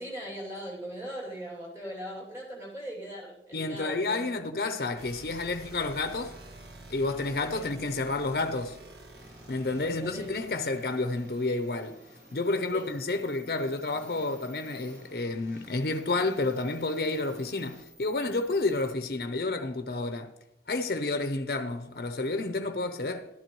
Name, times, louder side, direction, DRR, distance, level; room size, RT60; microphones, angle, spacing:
voice 1, 0.0-4.3 7.5-7.7 9.7-10.2 12.7-12.9, equal, 15° right, 2.5 m, -40 dB
voice 2, 3.5-6.4 6.9-8.8 9.5-12.0 12.3-20.3 20.7-23.3, left 2 dB, 55° left, 0.6 m, -30 dB
sound 1, 5.0-18.9, right 2 dB, 65° right, 1.5 m, -51 dB
Engine, 9.2-17.8, equal, 45° right, 2.0 m, -55 dB
12.0 x 12.0 x 3.1 m
head